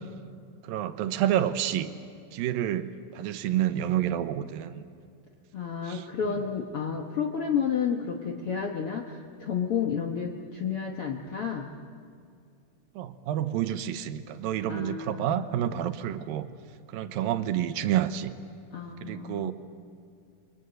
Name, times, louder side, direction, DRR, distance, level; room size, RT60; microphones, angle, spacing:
voice 1, 0.7-1.9 2.3-4.8 5.9-6.3 13.0-16.5 16.9-18.3 19.0-19.5, right 11 dB, 80° right, 10 dB, 2.7 m, -29 dB
voice 2, 5.5-11.7 14.7-15.4 15.7-15.9 18.7-19.5, left 7 dB, 65° left, 2 dB, 1.4 m, -31 dB
28.5 x 23.5 x 8.0 m, 2.4 s
omnidirectional pair, 4.2 m